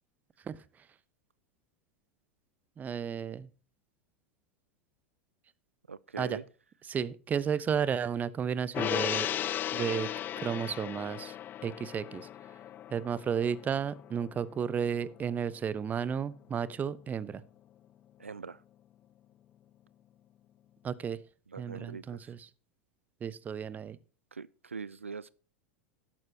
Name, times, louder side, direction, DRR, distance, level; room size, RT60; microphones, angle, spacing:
voice 1, 0.4-0.9 2.8-3.5 6.2-6.4 6.8-9.3 9.7-10.1 10.4-11.4 11.6-12.3 12.9-17.4 20.8-21.2 21.6-22.5 23.2-24.0, right 7 dB, 25° right, 0.9 m, -33 dB
voice 2, 5.9-6.4 18.2-18.6 21.5-22.3 24.3-25.3, right 5 dB, 85° right, 0.4 m, -42 dB
Gong, 8.7-15.4 15.7-15.8, left 11 dB, 30° left, 0.4 m, -36 dB
12.0 x 11.5 x 2.9 m
figure-of-eight pair, 85°, 7 cm